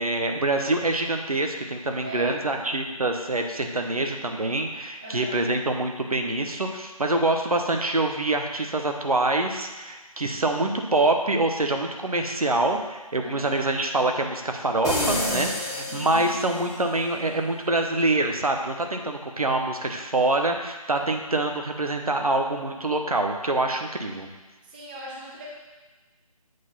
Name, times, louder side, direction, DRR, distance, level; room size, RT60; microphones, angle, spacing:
voice 1, 0.0-24.3, right 2 dB, 70° right, 4 dB, 1.0 m, -25 dB
voice 2, 2.0-2.6 5.0-5.5 13.2-13.6 15.9-16.4 24.7-25.5, equal, 15° right, -5 dB, 0.8 m, -39 dB
sound 1, 14.8-16.7, left 1 dB, 10° left, 0.9 m, -28 dB
7.8 x 3.9 x 5.4 m, 1.2 s
figure-of-eight pair, 155°, 19 cm